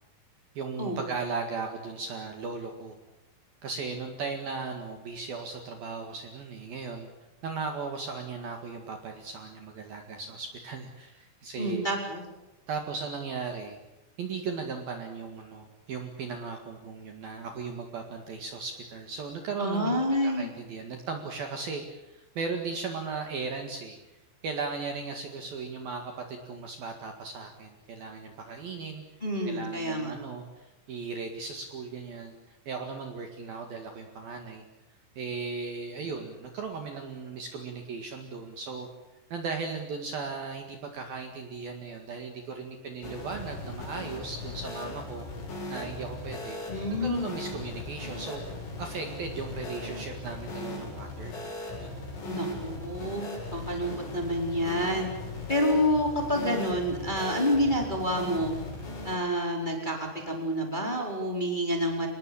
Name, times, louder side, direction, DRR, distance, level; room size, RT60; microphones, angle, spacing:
voice 1, 0.5-3.0 3.6-7.1 7.4-11.8 12.7-13.8 14.2-20.0 20.2-24.0 24.4-29.0 29.5-32.3 32.7-34.6 35.2-38.9 39.3-45.3 45.7-46.6 47.0-52.0, right 4 dB, 55° right, 4 dB, 3.3 m, -37 dB
voice 2, 11.6-12.2 19.6-20.5 29.2-30.1 46.7-47.3 52.3-55.1 55.5-58.6 59.0-62.1, equal, 10° left, 1 dB, 3.8 m, -28 dB
sound 1, 43.0-59.1, left 2 dB, 65° left, 10.0 m, -38 dB
26.5 x 20.5 x 8.6 m, 0.96 s
omnidirectional pair, 5.9 m